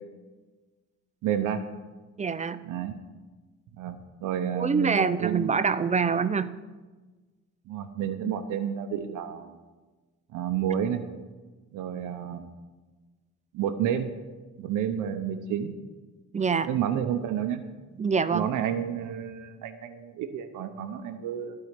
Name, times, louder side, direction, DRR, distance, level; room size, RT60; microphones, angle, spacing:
voice 1, 1.2-1.6 2.6-3.0 3.8-5.7 7.7-9.6 10.3-11.0 11.7-12.5 13.5-14.1 14.6-15.7 16.7-17.6 18.3-21.6, right 9 dB, 90° right, 8 dB, 0.8 m, -30 dB
voice 2, 2.2-2.6 4.5-6.5 16.3-16.7 18.0-18.5, right 5 dB, 25° right, 13 dB, 0.5 m, -25 dB
12.5 x 4.8 x 8.1 m, 1.3 s
cardioid pair, 90°, 30 cm